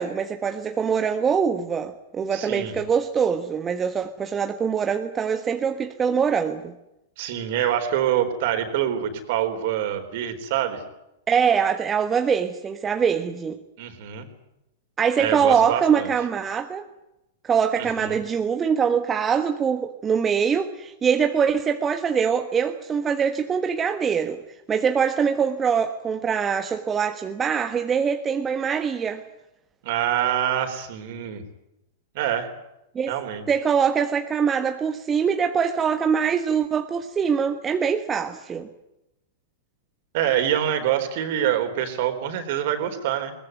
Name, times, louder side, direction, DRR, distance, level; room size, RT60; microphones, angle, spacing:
voice 1, 0.0-6.7 11.3-13.6 15.0-16.9 17.4-24.4 24.7-29.2 32.9-33.1 33.5-38.7, right 7 dB, 20° right, 6 dB, 1.4 m, -23 dB
voice 2, 2.3-2.7 7.2-10.8 13.8-14.3 15.2-16.1 17.8-18.2 29.8-31.4 32.1-32.5 33.1-33.4 40.1-43.3, right 10 dB, 50° right, 8 dB, 4.0 m, -25 dB
22.0 x 20.5 x 9.4 m, 0.89 s
figure-of-eight pair, 100°, 0 cm